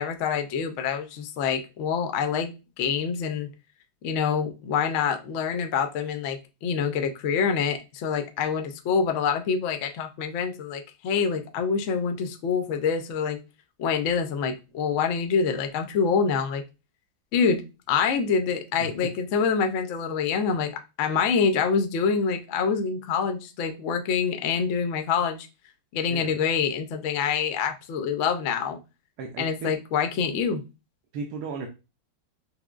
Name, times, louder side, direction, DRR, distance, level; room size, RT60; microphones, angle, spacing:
voice 1, 0.0-3.5 4.0-13.4 13.8-16.6 17.3-17.6 17.9-25.5 25.9-28.8 29.4-30.6, left 6 dB, 75° left, 6 dB, 0.7 m, -26 dB
voice 2, 29.2-29.7 31.1-31.7, right 4 dB, 75° right, 1 dB, 1.1 m, -35 dB
5.8 x 2.1 x 2.3 m, 0.28 s
omnidirectional pair, 1.9 m